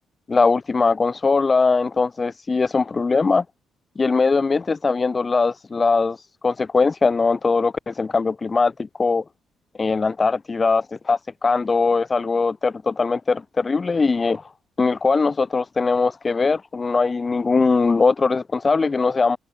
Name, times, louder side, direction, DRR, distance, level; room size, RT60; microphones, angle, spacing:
voice 1, 0.3-3.4 4.0-6.2 6.4-9.2 9.8-14.4 14.8-19.4, left 4 dB, 30° left, 0.5 m, -20 dB
cardioid pair, 90°, 0 cm